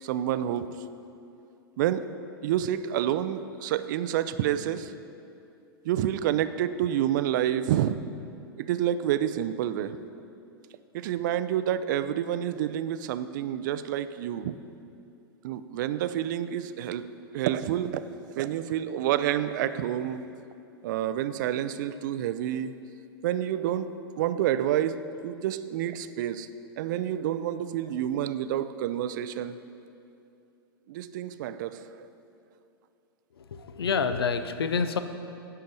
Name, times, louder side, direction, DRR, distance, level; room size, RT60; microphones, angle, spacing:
voice 1, 0.0-0.8 1.8-2.1 2.4-4.9 5.8-8.0 8.6-10.0 10.9-14.5 15.4-17.1 17.3-18.0 18.4-20.2 20.8-22.7 23.2-26.5 26.8-29.6 30.9-32.1, right 11 dB, 50° right, 13 dB, 0.4 m, -28 dB
voice 2, 33.4-35.0, left 5 dB, 75° left, 10 dB, 0.5 m, -28 dB
10.5 x 4.6 x 5.3 m, 2.6 s
figure-of-eight pair, 100°, 13 cm